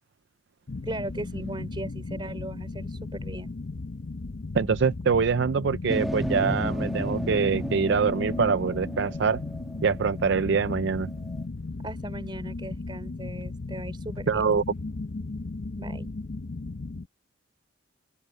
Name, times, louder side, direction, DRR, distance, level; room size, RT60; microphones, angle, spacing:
sound 1, 0.7-17.1, left 3 dB, 55° left, 0.7 m, -36 dB
voice 1, 0.8-3.5 11.8-14.5 15.8-16.1, right 1 dB, 25° right, 4.1 m, -37 dB
voice 2, 4.5-9.4 9.8-11.1 14.3-14.6, right 5 dB, 55° right, 0.4 m, -24 dB
sound 2, 5.9-10.8 11.3-11.4, equal, ahead, 1.4 m, -34 dB
open air
head